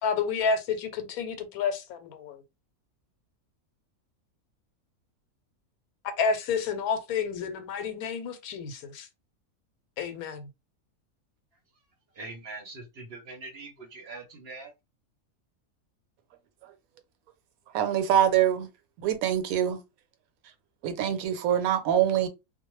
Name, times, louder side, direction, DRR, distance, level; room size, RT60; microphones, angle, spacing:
voice 1, 0.0-2.4 6.2-9.1 10.0-10.5, left 5 dB, 85° left, 1.1 m, -30 dB
voice 2, 12.2-14.7, right 3 dB, 55° right, 0.8 m, -42 dB
voice 3, 17.7-18.7 19.0-19.8 20.8-22.3, right 10 dB, 80° right, 1.0 m, -24 dB
2.4 x 2.1 x 3.0 m
omnidirectional pair, 1.5 m